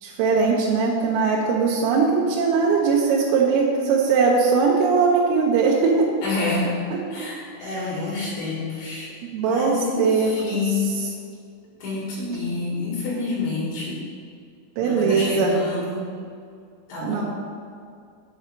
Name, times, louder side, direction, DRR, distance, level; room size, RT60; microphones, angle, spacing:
voice 1, 0.0-5.9 7.2-7.3 7.6-7.8 9.3-10.6 14.8-15.5 17.0-17.2, right 5 dB, 85° right, -3 dB, 3.5 m, -20 dB
voice 2, 6.2-6.7 7.1-9.1 9.4-10.9 11.8-14.0 14.8-16.1 16.9-17.2, left 3 dB, 65° left, -5 dB, 4.0 m, -28 dB
8.4 x 4.5 x 6.8 m, 2.3 s
omnidirectional pair, 5.8 m